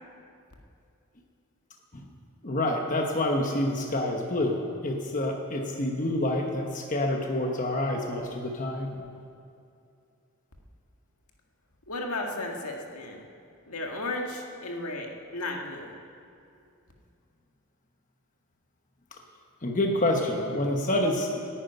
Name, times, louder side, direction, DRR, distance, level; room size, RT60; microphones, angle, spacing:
voice 1, 2.4-9.0 19.6-21.4, left 1 dB, 35° left, 2 dB, 1.1 m, -27 dB
voice 2, 11.9-13.2 13.7-15.9, left 2 dB, 80° left, 1 dB, 1.8 m, -34 dB
11.0 x 10.0 x 9.2 m, 2.5 s
head